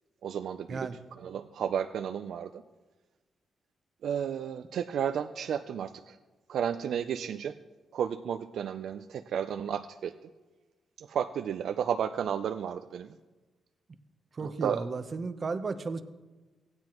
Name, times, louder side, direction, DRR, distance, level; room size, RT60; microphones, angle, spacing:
voice 1, 0.2-0.9 1.2-2.6 4.0-6.2 6.5-7.6 7.9-10.1 11.0-13.2 14.4-14.8, right 8 dB, 75° right, 8 dB, 0.4 m, -32 dB
voice 2, 14.3-16.0, right 4 dB, 40° right, 10 dB, 0.8 m, -34 dB
16.5 x 9.5 x 3.0 m, 1.2 s
cardioid pair, 85°, 0 cm